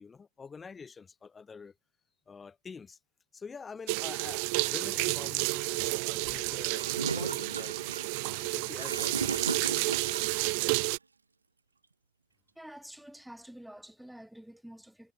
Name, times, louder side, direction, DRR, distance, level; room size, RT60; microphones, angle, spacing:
voice 1, 0.0-1.7 2.3-3.0 3.3-7.8 8.4-9.8, left 5 dB, 15° left, 5.4 m, -46 dB
sound 1, 3.9-11.0, right 36 dB, 45° right, 0.4 m, -31 dB
Gurgling / Toilet flush, 6.7-10.5, right 4 dB, 75° right, 1.5 m, -36 dB
voice 2, 12.6-15.1, right 1 dB, ahead, 1.6 m, -48 dB
figure-of-eight pair, 90°, 0 cm